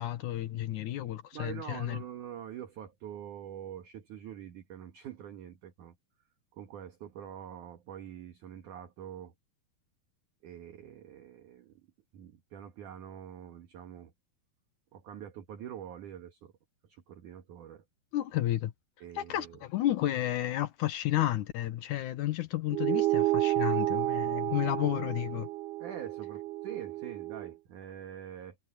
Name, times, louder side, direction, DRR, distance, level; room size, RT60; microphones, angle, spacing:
voice 1, 0.0-2.0 18.1-18.7 19.2-25.5, left 13 dB, 70° left, 2.0 m, -32 dB
voice 2, 1.3-6.0 6.5-9.3 10.4-11.8 12.1-14.1 14.9-16.5 16.8-17.8 19.0-19.6 25.8-28.6, right 10 dB, 60° right, 2.6 m, -45 dB
sound 1, 22.7-27.5, right 17 dB, 85° right, 2.5 m, -31 dB
omnidirectional pair, 4.6 m